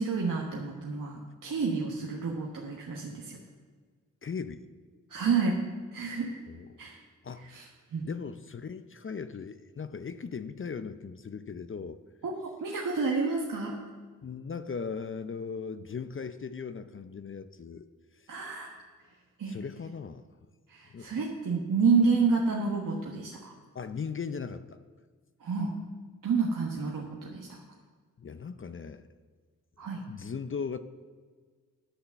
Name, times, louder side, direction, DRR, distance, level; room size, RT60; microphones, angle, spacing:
voice 1, 0.0-3.4 5.1-5.6 5.9-6.4 6.8-7.0 7.5-8.0 12.2-12.3 12.6-13.8 18.3-18.7 19.4-19.6 20.7-23.5 25.4-25.7 26.2-27.6 29.8-30.0, right 4 dB, 65° right, -1 dB, 1.3 m, -29 dB
voice 2, 4.2-4.6 6.5-6.8 7.2-7.6 8.0-12.0 14.2-17.9 18.1-18.3 19.5-20.2 20.9-21.2 23.7-24.8 28.2-29.1 30.1-30.8, left 5 dB, 35° left, 11 dB, 0.6 m, -38 dB
10.0 x 5.8 x 6.9 m, 1.5 s
supercardioid pair, 45°, 35 cm